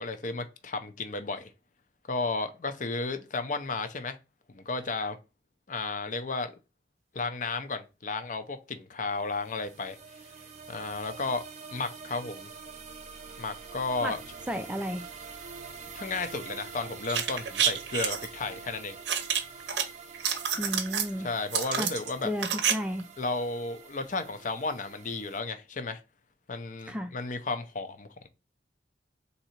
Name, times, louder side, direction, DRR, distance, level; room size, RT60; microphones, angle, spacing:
voice 1, 0.0-1.5 2.1-4.2 4.5-5.2 5.7-6.5 7.1-10.0 10.7-11.4 11.7-12.5 13.4-14.2 15.9-19.0 21.2-22.3 23.2-26.0 26.5-28.3, left 3 dB, 45° left, 0.6 m, -33 dB
sound 1, 9.2-25.4, right 5 dB, 40° right, 0.7 m, -46 dB
voice 2, 14.5-15.0 20.6-21.3 21.8-21.9 22.2-23.1 26.9-27.1, equal, 5° right, 0.3 m, -33 dB
sound 2, 17.0-18.3 19.1-19.8 20.1-21.1 21.5-22.7 23.0-23.1, right 8 dB, 90° right, 0.7 m, -28 dB
3.8 x 2.7 x 4.3 m
head